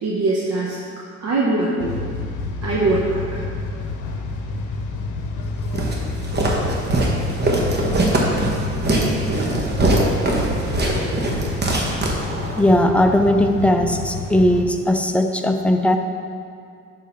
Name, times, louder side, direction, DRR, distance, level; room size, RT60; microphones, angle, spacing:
voice 1, 0.0-2.0 2.6-3.3 9.3-9.4, right 2 dB, 60° right, -5 dB, 0.9 m, -22 dB
sound 1, 1.8-14.6, left 4 dB, 80° left, 0.7 m, -29 dB
Walk footsteps, 5.7-12.7, right 2 dB, 35° right, 1.1 m, -21 dB
voice 2, 12.6-16.0, left 1 dB, 5° left, 5 dB, 0.4 m, -18 dB
6.6 x 3.7 x 5.5 m, 2.4 s
cardioid pair, 90°, 30 cm